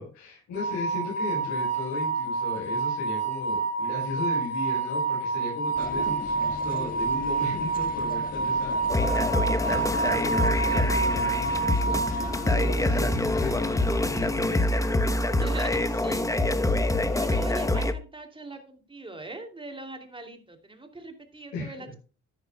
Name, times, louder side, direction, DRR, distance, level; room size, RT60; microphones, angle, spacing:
voice 1, 0.0-15.0 17.0-17.2 21.5-22.0, left 3 dB, 70° left, -4 dB, 5.7 m, -36 dB
sound 1, 0.5-12.8, right 4 dB, 50° left, 2.7 m, -28 dB
sound 2, 5.7-14.4, left 2 dB, 30° left, 1.6 m, -39 dB
sound 3, 8.9-17.9, left 1 dB, 10° left, 1.0 m, -25 dB
voice 2, 15.4-16.3 17.1-22.0, right 2 dB, 15° right, 5 dB, 2.8 m, -40 dB
13.0 x 10.5 x 2.3 m, 0.35 s
cardioid pair, 90°, 30 cm